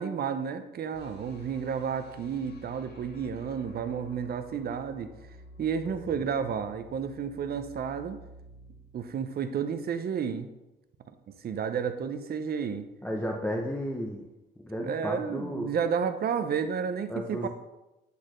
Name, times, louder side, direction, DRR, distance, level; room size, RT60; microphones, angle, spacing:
voice 1, 0.0-5.1 5.6-8.2 8.9-10.5 11.3-12.9 14.8-17.5, right 7 dB, 50° right, 9 dB, 0.6 m, -31 dB
sound 1, 0.9-10.0, right 1 dB, 55° left, 1.1 m, -51 dB
voice 2, 13.0-14.3 14.6-15.7 17.1-17.5, equal, 10° left, -1 dB, 0.7 m, -33 dB
8.2 x 4.1 x 3.2 m, 0.97 s
cardioid pair, 90°, 20 cm